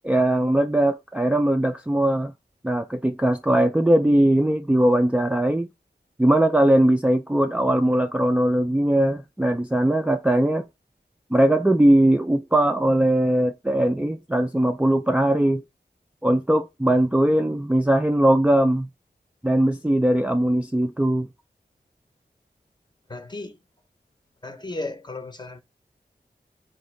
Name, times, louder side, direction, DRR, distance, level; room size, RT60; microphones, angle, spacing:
voice 1, 0.0-2.3 2.6-5.7 6.2-10.6 11.3-15.6 16.2-18.9 19.4-21.3, right 1 dB, 5° right, 0.3 m, -20 dB
voice 2, 23.1-23.6 24.4-25.6, left 2 dB, 25° left, 0.7 m, -34 dB
3.7 x 2.5 x 3.1 m
cardioid pair, 45°, 18 cm